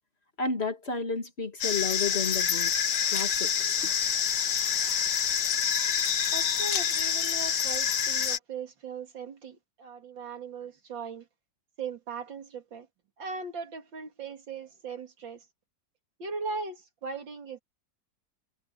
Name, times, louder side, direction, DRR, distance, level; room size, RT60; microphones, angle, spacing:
voice 1, 0.4-2.7 3.1-3.5 3.8-3.9, left 4 dB, 35° left, 2.4 m, -31 dB
sound 1, 1.6-8.4, left 8 dB, 70° left, 1.8 m, -27 dB
voice 2, 6.3-11.3 11.8-12.9 13.2-15.4 16.2-17.6, right 4 dB, 85° right, 3.2 m, -39 dB
omnidirectional pair, 2.0 m